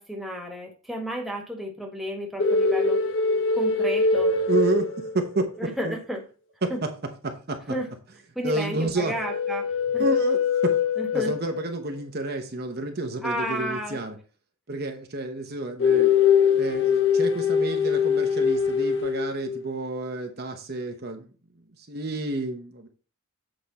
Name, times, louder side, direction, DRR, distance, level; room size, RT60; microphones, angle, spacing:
voice 1, 0.0-3.0 3.5-4.4 5.6-6.2 6.7-6.8 7.7-7.9 8.3-10.0 11.0-11.3 13.2-14.0, equal, ahead, 0 dB, 1.6 m, -32 dB
sound 1, 2.4-5.6 9.1-11.7 15.8-19.6, left 5 dB, 60° left, 1.0 m, -23 dB
voice 2, 4.5-6.0 6.6-6.9 7.2-7.6 8.4-9.2 10.0-10.8 11.1-14.1 14.7-16.1 16.5-21.3 21.9-22.9, right 2 dB, 50° right, 5 dB, 0.9 m, -30 dB
8.0 x 5.0 x 4.1 m, 0.36 s
head